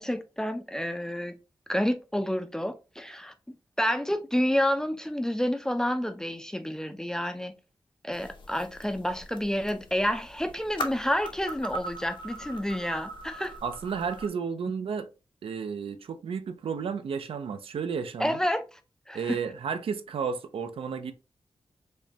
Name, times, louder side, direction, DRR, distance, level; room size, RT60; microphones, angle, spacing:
voice 1, 0.0-1.4 1.7-3.3 3.8-7.5 8.0-13.5 18.2-18.8 19.1-19.4, equal, 5° left, 0.3 m, -29 dB
sound 1, 8.1-14.3, equal, 60° left, 0.6 m, -40 dB
voice 2, 13.6-15.1 15.4-18.4 19.1-21.1, right 6 dB, 85° right, 0.4 m, -32 dB
5.0 x 2.1 x 2.7 m
wide cardioid pair, 170°, 9 cm